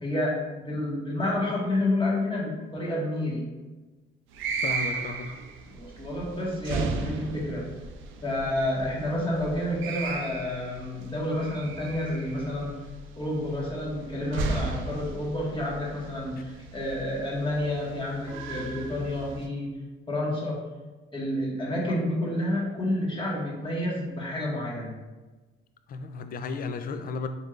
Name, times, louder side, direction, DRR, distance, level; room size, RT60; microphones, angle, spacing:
voice 1, 0.0-3.4 5.7-7.7 8.2-12.8 13.1-19.8 20.1-20.6 21.1-25.0, left 1 dB, 25° left, -5 dB, 1.4 m, -29 dB
sound 1, 4.3-19.5, right 4 dB, 80° right, 0.4 m, -36 dB
voice 2, 4.6-5.3 16.4-16.5 21.9-22.0 25.9-27.3, left 4 dB, 45° left, 9 dB, 0.4 m, -34 dB
4.2 x 3.3 x 2.5 m, 1.2 s
cardioid pair, 90°, 20 cm